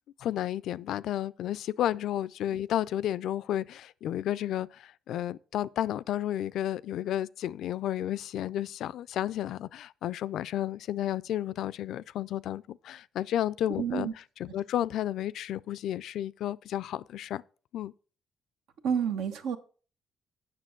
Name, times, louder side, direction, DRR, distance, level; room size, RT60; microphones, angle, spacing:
voice 1, 0.2-14.1 14.4-17.4 17.7-17.9, left 12 dB, 80° left, 0.3 m, -32 dB
voice 2, 13.8-14.1 18.8-19.6, right 7 dB, 85° right, 0.9 m, -29 dB
7.5 x 6.1 x 5.8 m
cardioid pair, 90°, 0 cm